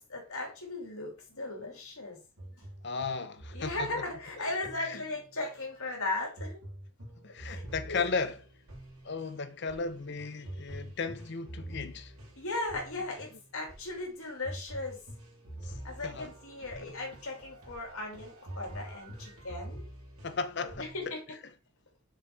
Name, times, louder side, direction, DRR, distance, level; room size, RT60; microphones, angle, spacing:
voice 1, 0.1-2.2 2.5-2.7 3.5-6.6 7.4-8.0 12.4-15.0 15.8-19.8 20.8-21.2, left 2 dB, 75° left, 2.9 m, -37 dB
sound 1, 2.4-5.5 6.4-21.1, right 1 dB, 80° right, 2.7 m, -46 dB
voice 2, 2.8-3.9 4.4-4.5 4.8-5.0 7.2-8.4 9.0-12.1 15.6-15.7 16.0-16.3 16.8-16.9 20.2-20.9, left 4 dB, 50° left, 0.7 m, -35 dB
6.3 x 4.6 x 4.7 m
head